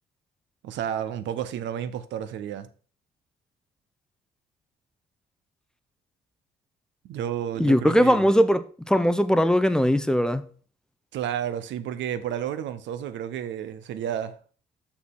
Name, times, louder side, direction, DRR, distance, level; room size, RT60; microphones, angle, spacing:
voice 1, 0.6-2.7 7.0-8.3 11.1-14.4, right 9 dB, 75° right, 0.7 m, -31 dB
voice 2, 7.6-10.4, equal, 5° left, 0.6 m, -20 dB
6.1 x 6.0 x 3.7 m
cardioid pair, 85°, 20 cm